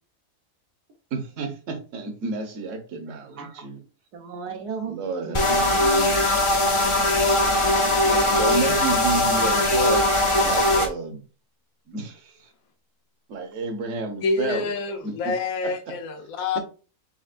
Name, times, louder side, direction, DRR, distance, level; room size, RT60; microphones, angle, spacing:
voice 1, 1.1-3.8 4.9-5.7 8.0-10.1 10.4-11.2 11.9-12.5 13.3-14.7 15.0-15.4, right 4 dB, 55° right, 1.3 m, -30 dB
voice 2, 3.0-3.6 4.1-5.0 5.2-6.1, right 5 dB, 85° right, 1.6 m, -35 dB
sound 1, 5.3-10.9, left 1 dB, 30° left, 0.5 m, -20 dB
voice 3, 14.2-16.6, left 4 dB, 65° left, 1.3 m, -27 dB
5.8 x 3.4 x 2.5 m
omnidirectional pair, 1.6 m